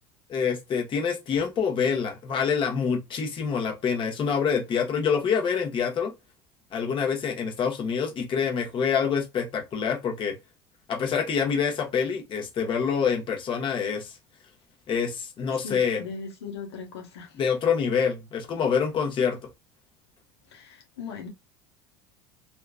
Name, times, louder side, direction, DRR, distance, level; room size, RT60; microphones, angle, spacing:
voice 1, 0.3-6.1 6.7-10.4 10.9-14.2 14.9-16.0 17.3-19.4, left 6 dB, 40° left, 1.2 m, -26 dB
voice 2, 15.6-17.4 20.5-21.3, left 5 dB, 85° left, 0.9 m, -39 dB
2.8 x 2.5 x 2.2 m
hypercardioid pair, 90°, 13 cm